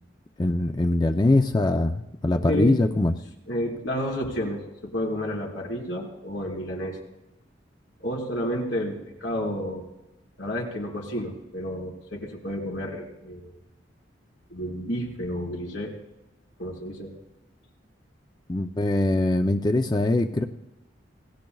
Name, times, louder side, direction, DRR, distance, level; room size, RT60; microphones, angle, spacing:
voice 1, 0.4-3.1 18.5-20.4, left 2 dB, 25° left, 6 dB, 0.6 m, -22 dB
voice 2, 3.5-7.0 8.0-9.9 10.4-13.6 14.5-15.9 16.6-17.1, equal, 85° left, -2 dB, 4.4 m, -30 dB
27.0 x 18.0 x 2.4 m, 0.94 s
head